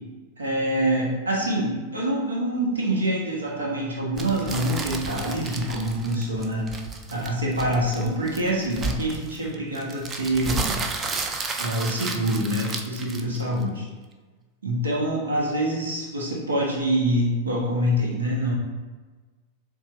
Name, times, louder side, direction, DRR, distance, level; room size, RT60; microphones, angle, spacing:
voice 1, 0.4-6.7 7.1-10.8 11.6-13.9 14.6-18.5, right 1 dB, 70° right, -3 dB, 1.1 m, -25 dB
sound 1, 4.2-13.6, right 4 dB, 20° right, 0.4 m, -32 dB
7.1 x 2.4 x 3.0 m, 1.3 s
figure-of-eight pair, 90°, 0 cm